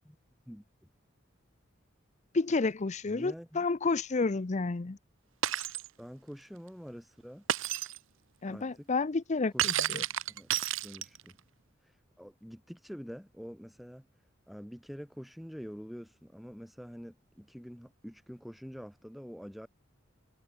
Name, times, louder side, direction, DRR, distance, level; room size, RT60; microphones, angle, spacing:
voice 1, 2.3-5.0 8.4-10.0, left 3 dB, 35° left, 0.6 m, -30 dB
voice 2, 3.0-3.7 6.0-7.5 8.4-8.9 9.5-10.5 10.8-11.4 11.8-14.1 14.5-19.7, equal, ahead, 6.9 m, -46 dB
Shatter, 5.4-5.9 7.5-8.0 9.6-11.3, right 11 dB, 80° right, 0.8 m, -31 dB
head